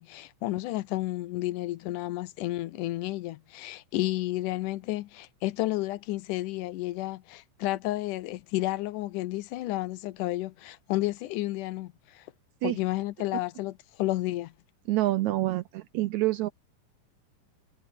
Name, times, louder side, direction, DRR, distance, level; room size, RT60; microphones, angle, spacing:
voice 1, 0.0-12.2 12.6-14.5, left 17 dB, 80° left, 2.2 m, -31 dB
voice 2, 14.9-16.5, right 16 dB, 80° right, 1.7 m, -27 dB
omnidirectional pair, 3.9 m